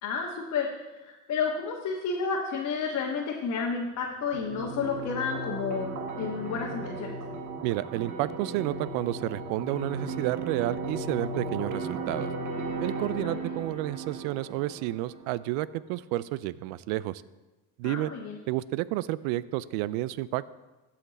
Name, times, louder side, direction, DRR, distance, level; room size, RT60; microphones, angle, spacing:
voice 1, 0.0-5.9 6.2-7.2 13.1-13.5 17.8-18.4, left 5 dB, 50° left, -2 dB, 1.4 m, -31 dB
sound 1, 4.3-15.3, right 3 dB, 65° right, 1.7 m, -36 dB
voice 2, 7.6-12.3 12.8-17.2 17.8-18.1 18.5-20.5, right 16 dB, 85° right, 19 dB, 0.5 m, -31 dB
15.5 x 5.8 x 4.1 m, 1.1 s
supercardioid pair, 95°, 34 cm